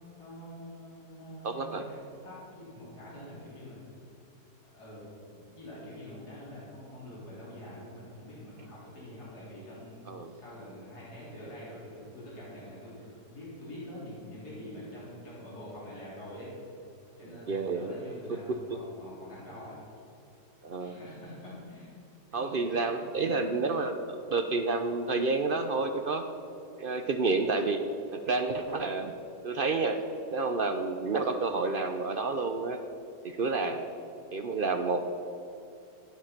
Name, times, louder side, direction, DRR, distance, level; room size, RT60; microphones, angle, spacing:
voice 1, 0.2-4.0 4.6-16.5 17.2-19.8 20.6-21.9 22.6-22.9, left 1 dB, 60° left, -7 dB, 4.6 m, -45 dB
voice 2, 1.4-1.8 10.1-10.3 17.5-17.9 18.3-18.8 20.6-20.9 22.3-26.3 26.8-27.8 28.1-29.1 29.4-30.0 30.3-32.8 33.2-33.8 34.3-35.1, right 3 dB, 70° right, 6 dB, 0.5 m, -29 dB
16.0 x 9.0 x 5.9 m, 2.9 s
omnidirectional pair, 1.9 m